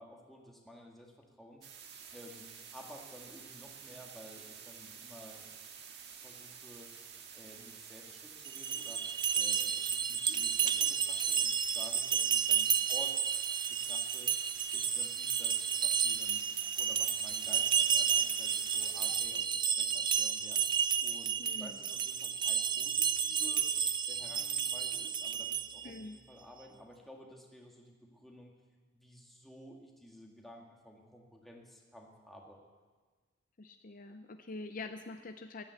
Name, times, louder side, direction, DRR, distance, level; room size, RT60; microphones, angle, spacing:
voice 1, 0.0-1.7 2.1-5.5 6.2-7.0 7.3-9.1 9.3-13.2 13.7-14.4 14.7-20.6 21.0-23.7 24.1-28.5 28.9-32.6, equal, ahead, -1 dB, 2.0 m, -53 dB
sound 1, 1.6-19.2, right 7 dB, 60° right, 1.7 m, -50 dB
sound 2, 8.5-25.9, right 7 dB, 25° right, 0.5 m, -31 dB
voice 2, 21.4-21.8 25.8-26.2 33.6-35.6, left 3 dB, 45° left, 8 dB, 0.6 m, -45 dB
14.0 x 11.0 x 8.1 m, 1.4 s
head